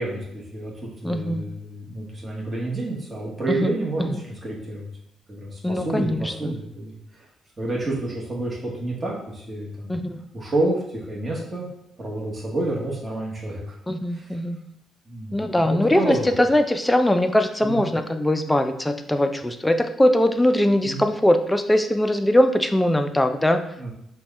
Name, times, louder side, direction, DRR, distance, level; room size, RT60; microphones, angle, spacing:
voice 1, 0.0-4.9 5.3-7.3 7.6-9.9 10.3-11.7 12.0-13.7 14.1-14.4 15.1-15.4 15.7-16.3 17.6-17.8 20.8-21.0 23.8-23.9, right 2 dB, 25° right, -4 dB, 1.2 m, -29 dB
voice 2, 1.0-1.5 3.6-3.7 4.0-4.1 5.6-6.6 9.9-10.2 13.9-14.6 15.3-23.6, left 1 dB, 10° left, 7 dB, 0.4 m, -21 dB
5.9 x 2.3 x 3.5 m, 0.76 s
cardioid pair, 90°, 0 cm